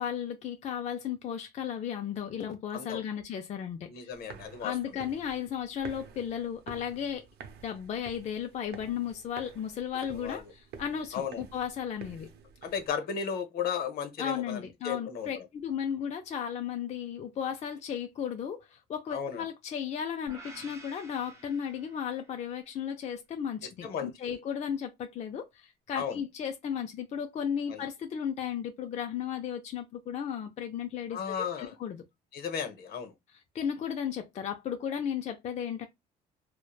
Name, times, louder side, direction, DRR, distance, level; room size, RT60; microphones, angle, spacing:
voice 1, 0.0-4.1 4.6-7.3 7.6-12.3 14.2-32.0 33.5-35.9, left 8 dB, 40° left, 0.4 m, -35 dB
voice 2, 3.9-4.7 10.1-10.5 11.1-11.4 12.6-15.3 19.1-19.4 23.8-24.1 26.0-26.2 27.7-27.8 31.1-31.7 32.3-33.1, left 7 dB, 65° left, 0.8 m, -35 dB
sound 1, 4.1-12.9, right 7 dB, 75° right, 0.6 m, -50 dB
sound 2, 20.3-22.5, right 2 dB, 15° right, 0.9 m, -50 dB
3.0 x 2.1 x 2.2 m
cardioid pair, 110°, 17 cm